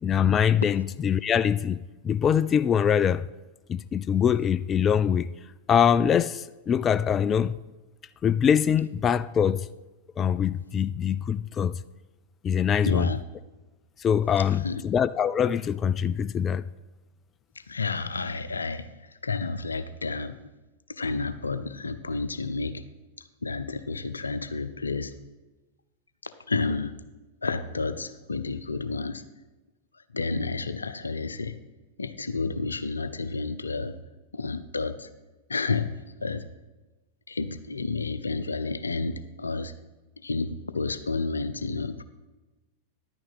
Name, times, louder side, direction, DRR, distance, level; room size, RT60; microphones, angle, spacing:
voice 1, 0.0-1.8 2.0-3.3 3.7-5.3 5.7-7.5 8.2-9.7 10.2-11.8 12.4-13.1 14.0-16.6, left 8 dB, 30° left, 0.3 m, -23 dB
voice 2, 12.7-13.2 14.4-14.8 17.6-20.4 20.9-22.8 23.4-25.1 26.2-27.0 27.4-29.2 30.1-31.6 32.0-34.0 34.3-35.1 35.5-36.4 37.3-39.7 40.2-42.0, left 3 dB, 85° left, 0.6 m, -31 dB
11.0 x 8.9 x 4.1 m
hypercardioid pair, 95°, 0 cm